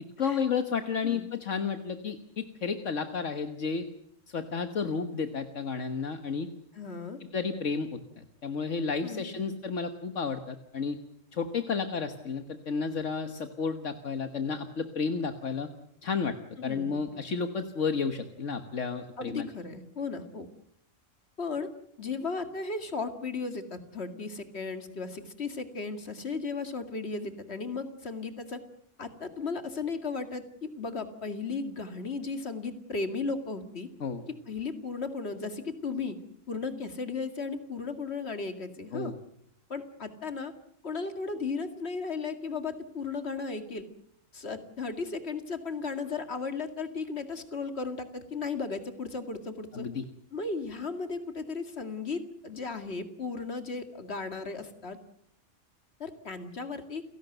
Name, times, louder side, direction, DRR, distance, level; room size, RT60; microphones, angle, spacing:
voice 1, 0.2-3.9 4.3-6.5 7.3-11.0 11.3-15.7 16.0-16.3 16.6-19.5 34.0-34.2 38.9-39.1 49.7-50.0, left 5 dB, 75° left, 7 dB, 1.7 m, -32 dB
voice 2, 6.7-7.2 9.0-9.5 16.6-17.0 19.2-20.5 21.4-21.7 22.0-28.6 29.0-33.9 34.5-36.2 36.5-39.1 39.7-40.5 40.8-43.9 44.3-49.9 50.3-55.0 56.0-57.0, left 4 dB, 55° left, 8 dB, 2.5 m, -35 dB
29.5 x 17.5 x 8.0 m, 0.72 s
omnidirectional pair, 1.3 m